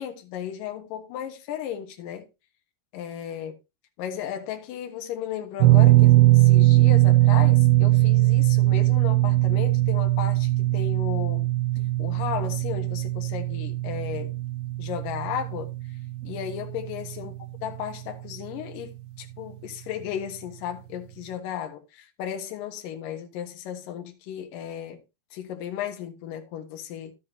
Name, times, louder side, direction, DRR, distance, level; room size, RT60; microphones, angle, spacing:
voice 1, 0.0-2.3 2.9-3.5 4.0-11.5 12.0-14.4 14.8-15.7 16.2-17.3 17.6-25.0 25.3-27.1, left 9 dB, 60° left, 2.6 m, -35 dB
sound 1, 5.6-17.8 18.1-18.3 20.0-20.1, right 17 dB, 85° right, 2.2 m, -20 dB
12.5 x 8.0 x 2.7 m
omnidirectional pair, 5.2 m